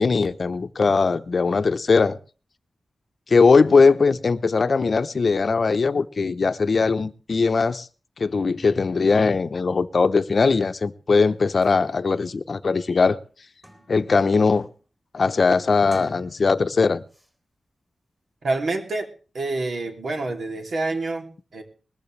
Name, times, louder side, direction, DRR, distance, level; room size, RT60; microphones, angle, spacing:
voice 1, 0.0-2.2 3.3-7.9 8.2-13.2 13.9-14.7 15.1-17.0, left 4 dB, 50° left, 0.8 m, -20 dB
sound 1, 11.3-11.4 11.6-11.8 12.3-12.4 12.8-14.2 14.6-14.9 15.7-16.7 17.1-17.3, equal, 10° right, 3.7 m, -48 dB
voice 2, 18.4-19.1 19.3-21.6, right 2 dB, 65° right, 2.9 m, -27 dB
20.5 x 14.0 x 3.3 m
wide cardioid pair, 170°, 0 cm